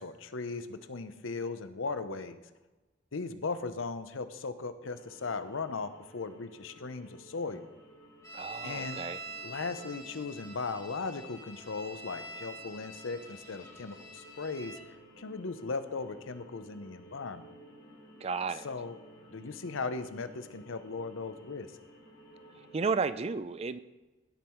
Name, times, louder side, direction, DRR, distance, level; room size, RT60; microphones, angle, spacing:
voice 1, 0.0-2.4 3.1-7.7 8.6-9.0 9.4-17.5 18.6-19.0 19.3-21.7, left 4 dB, 85° left, 11 dB, 0.7 m, -38 dB
sound 1, 4.9-23.0, right 1 dB, 70° left, 2.9 m, -56 dB
sound 2, 8.2-14.8, right 2 dB, 15° left, 1.4 m, -46 dB
voice 2, 8.3-9.2 18.2-18.7 22.7-23.8, right 4 dB, 30° right, 14 dB, 0.4 m, -32 dB
16.5 x 5.5 x 4.5 m, 1.1 s
head